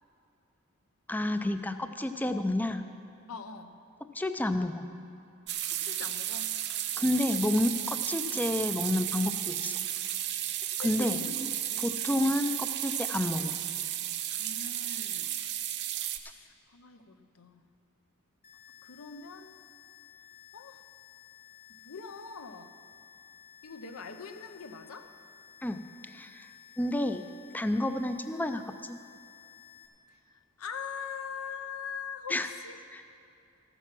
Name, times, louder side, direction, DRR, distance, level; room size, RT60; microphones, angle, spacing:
voice 1, 1.1-2.9 4.1-4.9 7.0-9.8 10.8-11.5 11.8-13.5 25.6-27.3 27.5-29.0 32.3-32.5 32.9-33.0, left 1 dB, 10° left, 9 dB, 0.4 m, -30 dB
voice 2, 3.3-3.8 5.7-6.5 10.6-11.4 11.7-12.3 14.4-15.4 16.2-17.6 18.8-19.5 20.5-20.8 21.7-22.8 23.6-25.1 30.1-32.8, left 6 dB, 75° left, 8 dB, 0.7 m, -43 dB
sound 1, 5.5-16.2, right 12 dB, 50° right, 0.6 m, -33 dB
sound 2, 18.4-29.9, left 10 dB, 45° left, 1.9 m, -55 dB
14.0 x 9.1 x 5.9 m, 2.5 s
head